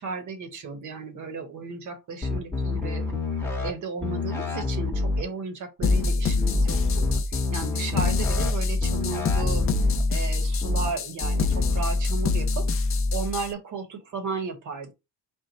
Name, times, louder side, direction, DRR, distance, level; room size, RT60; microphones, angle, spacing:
voice 1, 0.0-3.1 3.6-9.7 10.1-12.7 13.1-14.9, right 4 dB, 50° right, 1.0 m, -34 dB
sound 1, 2.2-3.7 4.0-5.2 5.8-6.1 6.4-8.5 8.8-10.0 10.6-10.9 11.2-11.8, left 3 dB, 5° left, 1.0 m, -27 dB
sound 2, 5.8-13.5, left 3 dB, 35° left, 0.4 m, -25 dB
4.5 x 2.1 x 3.9 m
cardioid pair, 155°, 38 cm